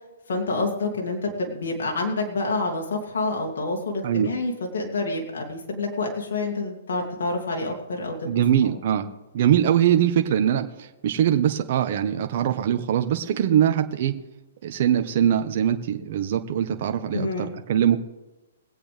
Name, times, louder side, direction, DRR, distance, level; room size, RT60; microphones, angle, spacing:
voice 1, 0.3-8.3 17.1-17.5, left 3 dB, 70° left, 1 dB, 2.6 m, -28 dB
voice 2, 8.2-9.1 9.3-14.2 14.6-18.0, right 10 dB, 50° right, 6 dB, 1.2 m, -22 dB
22.5 x 8.5 x 3.5 m, 1.1 s
hypercardioid pair, 145°, 0 cm